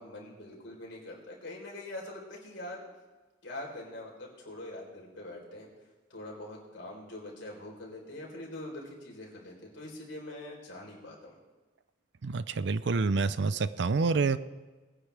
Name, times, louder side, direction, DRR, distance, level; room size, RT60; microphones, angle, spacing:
voice 1, 0.0-2.8 3.4-5.7 6.1-11.3, left 1 dB, 75° left, -2 dB, 3.9 m, -43 dB
voice 2, 12.2-14.4, right 4 dB, 65° right, 15 dB, 0.5 m, -27 dB
20.0 x 9.8 x 3.4 m, 1.2 s
head